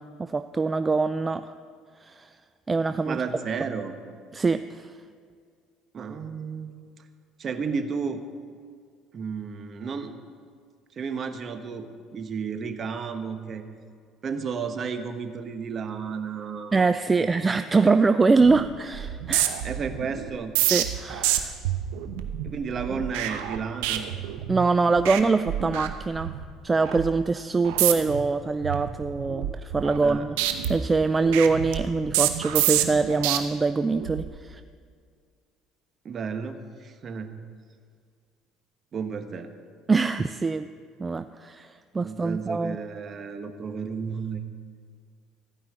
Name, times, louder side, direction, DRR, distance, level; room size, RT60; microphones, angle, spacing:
voice 1, 0.0-1.5 2.0-2.3 2.7-3.2 4.3-4.9 16.7-19.6 20.7-21.5 24.5-26.3 26.6-30.4 30.7-34.6 39.9-40.7 41.0-42.8, right 4 dB, 20° right, 10 dB, 0.4 m, -24 dB
voice 2, 3.0-3.9 5.9-6.7 7.4-8.2 9.1-10.2 10.9-13.6 14.2-16.9 17.2-17.6 19.6-20.5 22.4-24.1 30.0-30.3 36.0-37.3 38.9-39.5 42.0-44.4, right 5 dB, 45° right, 7 dB, 1.2 m, -32 dB
sound 1, 18.4-18.7 18.9-24.7 25.0-25.2 25.5-26.4 26.8-27.1 27.6-28.2 28.6-30.1 30.4-33.4 33.9-34.3, right 12 dB, 90° right, 0.9 m, -28 dB
15.0 x 5.5 x 9.8 m, 2.1 s
supercardioid pair, 90°, 0 cm